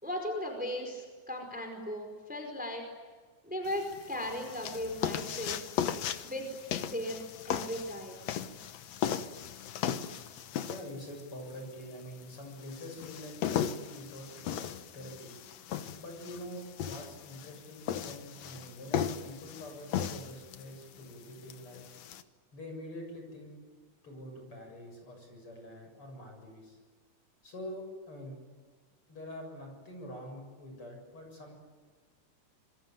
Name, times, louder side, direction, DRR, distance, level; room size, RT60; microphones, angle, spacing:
voice 1, 0.0-2.8 3.4-5.7 6.2-6.5 6.8-7.2 7.5-8.2, left 1 dB, 5° right, 4 dB, 4.7 m, -37 dB
sound 1, 3.7-22.2, left 9 dB, 65° left, 2.2 m, -37 dB
voice 2, 10.6-15.3 16.0-21.9 22.5-23.6 24.0-26.8 27.4-28.4 29.1-31.5, equal, 45° left, 3 dB, 8.2 m, -45 dB
27.0 x 24.0 x 9.2 m, 1.5 s
omnidirectional pair, 3.5 m